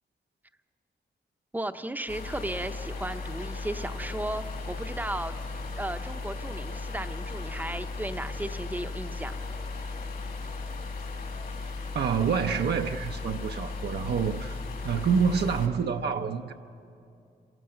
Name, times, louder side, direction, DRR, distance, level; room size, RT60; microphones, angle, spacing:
voice 1, 1.5-5.3 5.8-9.4, right 1 dB, 10° right, 9 dB, 0.7 m, -35 dB
sound 1, 2.1-15.7, left 3 dB, 60° left, 2.4 m, -36 dB
voice 2, 11.9-16.5, right 6 dB, 70° right, 4 dB, 0.7 m, -27 dB
27.0 x 17.5 x 7.8 m, 2.6 s
wide cardioid pair, 160°, 18 cm